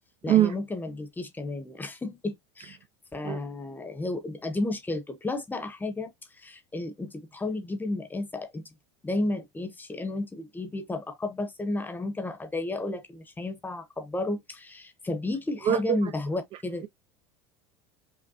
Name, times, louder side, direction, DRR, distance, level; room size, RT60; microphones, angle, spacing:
voice 1, 0.2-2.8 3.1-8.7 9.0-16.8, left 2 dB, 10° left, 0.8 m, -32 dB
voice 2, 15.7-16.1, right 11 dB, 40° right, 0.4 m, -23 dB
5.4 x 2.1 x 2.7 m
supercardioid pair, 105°, 15 cm